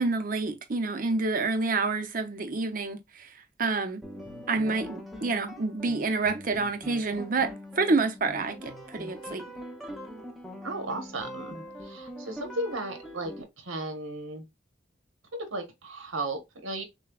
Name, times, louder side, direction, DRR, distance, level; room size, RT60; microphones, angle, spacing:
voice 1, 0.0-3.3 3.6-4.0 4.5-9.5, right 3 dB, 45° right, 0.6 m, -28 dB
sound 1, 4.0-13.4, equal, ahead, 0.7 m, -43 dB
voice 2, 10.6-11.6 11.8-14.4 15.3-16.8, right 2 dB, 85° right, 1.1 m, -35 dB
6.6 x 2.2 x 2.3 m
head